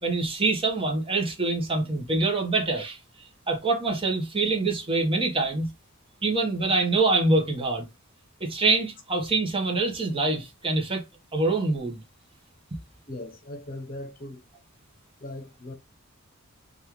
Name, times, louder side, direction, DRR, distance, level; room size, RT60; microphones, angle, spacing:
voice 1, 0.0-3.0 3.5-5.7 6.2-7.9 8.4-11.0 11.3-12.0, right 3 dB, 25° right, 1.0 m, -25 dB
voice 2, 13.1-14.4 15.2-15.7, left 1 dB, 40° left, 0.9 m, -39 dB
5.3 x 2.4 x 3.0 m
head